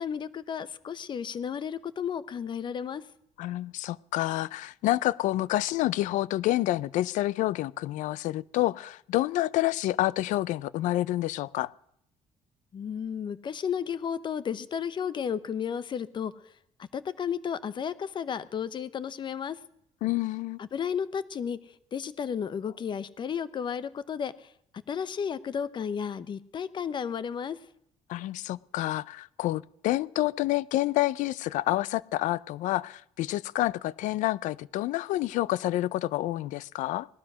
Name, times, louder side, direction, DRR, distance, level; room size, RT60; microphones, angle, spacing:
voice 1, 0.0-3.0 12.7-16.3 16.8-19.6 20.6-21.6 21.9-24.5 24.9-27.6, left 7 dB, 40° left, 0.9 m, -33 dB
voice 2, 3.4-11.7 20.0-20.6 28.1-37.1, left 16 dB, 85° left, 0.5 m, -28 dB
18.0 x 12.5 x 6.2 m
cardioid pair, 135°, 13 cm